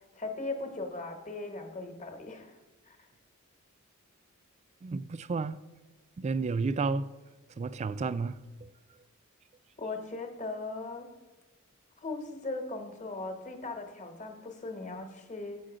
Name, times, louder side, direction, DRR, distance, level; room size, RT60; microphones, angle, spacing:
voice 1, 0.1-2.6 2.9-3.1 9.8-11.1 12.0-15.6, left 3 dB, 35° left, 1.1 m, -38 dB
voice 2, 4.8-5.6 6.2-7.1 7.6-8.7, right 4 dB, 30° right, 0.3 m, -32 dB
7.7 x 6.5 x 5.0 m
head